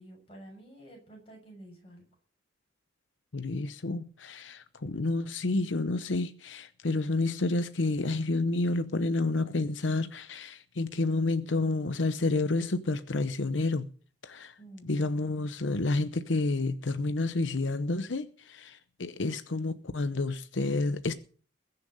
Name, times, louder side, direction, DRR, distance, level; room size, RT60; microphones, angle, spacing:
voice 1, 0.0-2.0 14.6-14.9, right 1 dB, 30° left, 6.8 m, -50 dB
voice 2, 3.3-13.9 14.2-14.5 14.8-21.1, left 2 dB, 90° left, 0.8 m, -30 dB
21.0 x 7.0 x 6.5 m
head